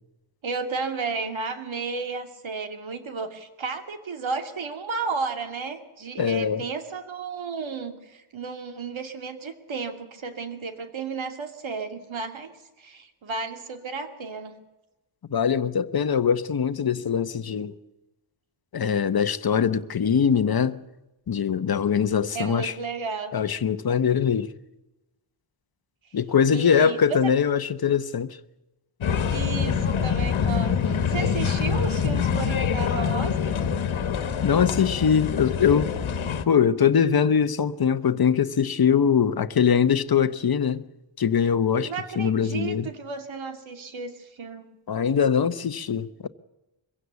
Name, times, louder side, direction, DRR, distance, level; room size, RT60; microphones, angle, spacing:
voice 1, 0.4-12.5 12.8-14.6 22.3-23.3 26.5-27.2 29.3-33.6 41.8-44.7, right 4 dB, 65° right, 2.6 m, -33 dB
voice 2, 6.2-6.6 15.3-17.7 18.7-20.8 21.3-22.7 23.3-24.5 26.1-28.4 34.4-35.9 36.5-40.8 41.2-42.9 44.9-46.3, left 7 dB, 45° left, 1.0 m, -22 dB
sound 1, 29.0-36.4, left 7 dB, 70° left, 1.6 m, -25 dB
24.0 x 16.0 x 8.3 m
wide cardioid pair, 150°, 50 cm